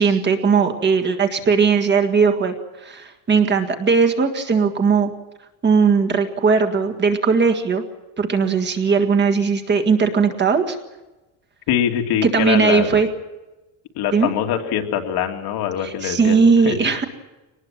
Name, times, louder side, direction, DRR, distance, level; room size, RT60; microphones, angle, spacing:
voice 1, 0.0-2.5 2.8-5.1 5.6-7.8 8.2-10.8 12.2-13.1 14.1-14.3 15.8-17.0, right 5 dB, 25° right, 5 dB, 1.8 m, -18 dB
voice 2, 11.7-12.9 13.9-16.8, left 9 dB, 55° left, 4 dB, 2.5 m, -23 dB
23.5 x 19.5 x 7.4 m, 1.1 s
cardioid pair, 180°, 46 cm